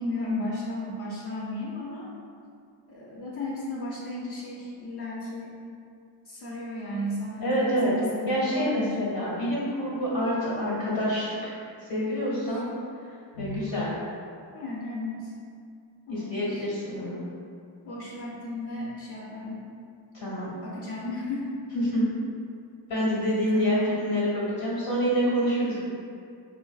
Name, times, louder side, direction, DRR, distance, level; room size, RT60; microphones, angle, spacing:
voice 1, 0.0-2.1 2.9-5.6 6.3-9.0 12.5-12.6 13.3-13.7 14.5-15.3 16.1-16.7 17.8-19.6 20.6-21.6 23.5-23.8, left 1 dB, 60° left, -5 dB, 0.7 m, -34 dB
voice 2, 7.4-7.9 8.3-11.5 11.9-12.6 13.4-13.9 16.1-17.2 20.1-20.5 21.9-22.0 22.9-25.8, equal, 85° left, -7 dB, 1.5 m, -27 dB
3.7 x 2.5 x 2.4 m, 2.4 s
cardioid pair, 90°, 44 cm